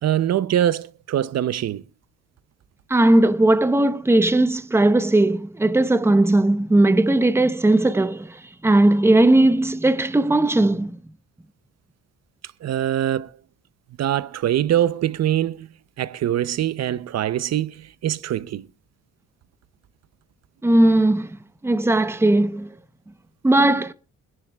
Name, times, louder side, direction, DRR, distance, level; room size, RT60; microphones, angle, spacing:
voice 1, 0.0-1.8 12.6-13.4 14.0-15.7 16.0-18.7, right 11 dB, 60° right, 0.7 m, -23 dB
voice 2, 2.9-11.0 20.6-21.3 21.6-22.7 23.4-23.9, right 1 dB, 10° right, 0.8 m, -18 dB
24.5 x 11.0 x 2.3 m
cardioid pair, 90°, 30 cm